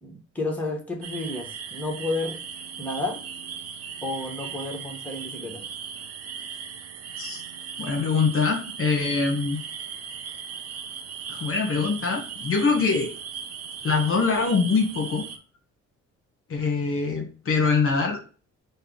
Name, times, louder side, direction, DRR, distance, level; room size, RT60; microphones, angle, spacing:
voice 1, 0.0-2.4 2.8-3.2 4.0-5.6, left 2 dB, 5° left, 0 dB, 1.4 m, -31 dB
sound 1, 1.0-15.4, right 7 dB, 55° right, 0.7 m, -38 dB
voice 2, 7.8-9.6 11.3-13.1 13.8-15.2 16.5-18.2, left 4 dB, 45° left, 2 dB, 1.2 m, -24 dB
5.4 x 2.3 x 3.8 m, 0.37 s
cardioid pair, 90°, 30 cm